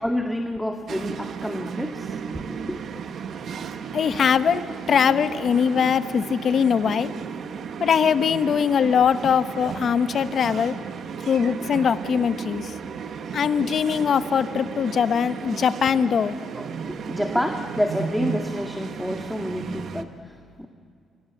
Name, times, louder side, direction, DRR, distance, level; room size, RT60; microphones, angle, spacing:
voice 1, 0.0-2.8 16.5-20.7, equal, ahead, 4 dB, 1.8 m, -29 dB
sound 1, 0.9-20.0, right 6 dB, 60° right, 1.6 m, -34 dB
voice 2, 3.9-7.1 7.8-10.7 11.3-12.7 13.3-16.4, left 7 dB, 55° left, 11 dB, 1.2 m, -21 dB
28.0 x 26.5 x 8.0 m, 2.4 s
cardioid pair, 90°, 0 cm